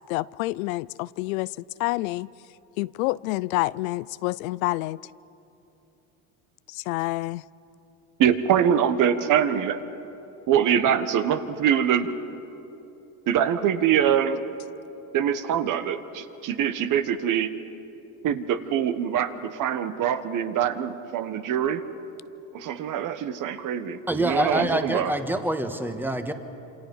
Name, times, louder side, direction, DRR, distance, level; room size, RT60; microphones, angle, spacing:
voice 1, 0.1-2.3 2.8-5.0 6.7-7.4 24.6-24.7, left 20 dB, 85° left, 20 dB, 0.5 m, -28 dB
voice 2, 8.2-9.8 10.5-12.2 13.3-14.4 15.1-17.5 18.2-21.8 22.5-25.1, right 9 dB, 50° right, 10 dB, 1.4 m, -24 dB
voice 3, 24.1-26.3, right 1 dB, 5° right, 7 dB, 1.5 m, -26 dB
27.5 x 26.0 x 5.5 m, 2.9 s
supercardioid pair, 105°, 40 cm